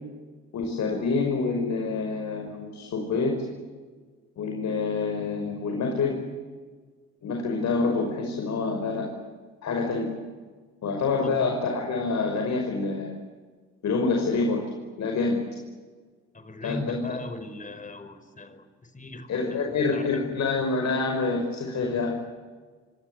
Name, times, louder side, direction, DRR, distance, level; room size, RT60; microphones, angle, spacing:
voice 1, 0.5-3.4 4.4-6.2 7.2-9.1 9.6-10.1 10.8-13.1 13.8-14.6 15.0-15.4 16.6-17.0 19.3-22.2, left 4 dB, 65° left, 2 dB, 5.7 m, -27 dB
voice 2, 16.3-20.0 20.3-20.4, left 2 dB, 25° left, 10 dB, 5.3 m, -39 dB
27.5 x 25.5 x 8.2 m, 1.5 s
cardioid pair, 90°, 30 cm